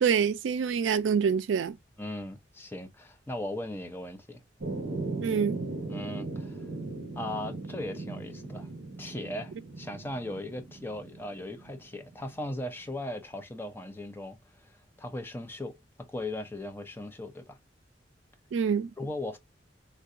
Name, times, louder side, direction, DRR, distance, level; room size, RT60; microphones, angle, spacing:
voice 1, 0.0-1.8 5.2-5.6 18.5-18.9, right 7 dB, 80° right, 0.3 m, -26 dB
voice 2, 2.0-4.4 5.9-6.6 7.1-8.7 9.0-14.7 15.0-17.6 19.0-19.4, left 1 dB, 10° left, 0.5 m, -38 dB
sound 1, 4.6-12.4, right 2 dB, 50° right, 1.1 m, -38 dB
3.7 x 2.2 x 2.4 m
head